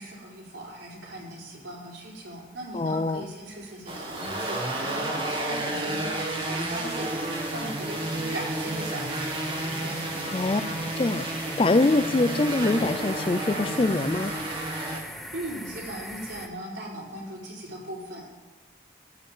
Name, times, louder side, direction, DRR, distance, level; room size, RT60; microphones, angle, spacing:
voice 1, 0.0-10.3 15.3-18.4, right 1 dB, 80° right, 4.2 m, -39 dB
voice 2, 2.7-3.2 10.3-10.6 11.0-14.3, left 2 dB, 30° left, 0.4 m, -24 dB
sound 1, 2.7-16.5, equal, ahead, 0.7 m, -44 dB
sound 2, 3.9-15.0, right 1 dB, 30° right, 1.6 m, -31 dB
14.5 x 5.5 x 8.8 m
head